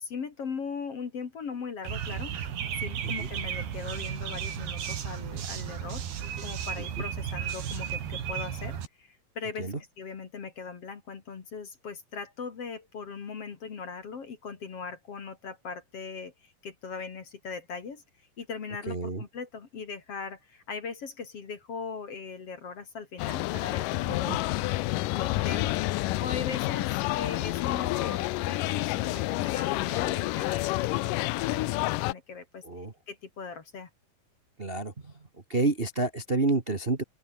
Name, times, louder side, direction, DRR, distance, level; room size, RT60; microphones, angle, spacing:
voice 1, 0.0-6.0 6.4-18.0 18.4-24.6 25.1-25.8 26.2-32.6 33.1-33.9, left 5 dB, 45° left, 2.8 m, -39 dB
sound 1, 1.9-8.9, right 9 dB, 80° right, 4.9 m, -34 dB
voice 2, 18.9-19.2 24.3-24.4 32.6-32.9 34.6-35.1 35.5-37.0, right 3 dB, 60° right, 0.6 m, -29 dB
sound 2, 23.2-32.1, left 19 dB, 90° left, 1.9 m, -29 dB
open air
omnidirectional pair, 4.5 m